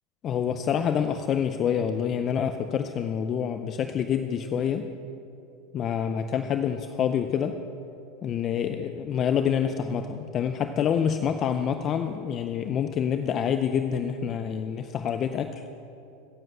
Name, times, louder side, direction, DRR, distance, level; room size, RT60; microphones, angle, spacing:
voice 1, 0.2-4.9 5.7-7.6 8.2-15.5, left 8 dB, 30° left, 8 dB, 0.5 m, -27 dB
15.5 x 7.7 x 7.9 m, 2.8 s
supercardioid pair, 150°, 0 cm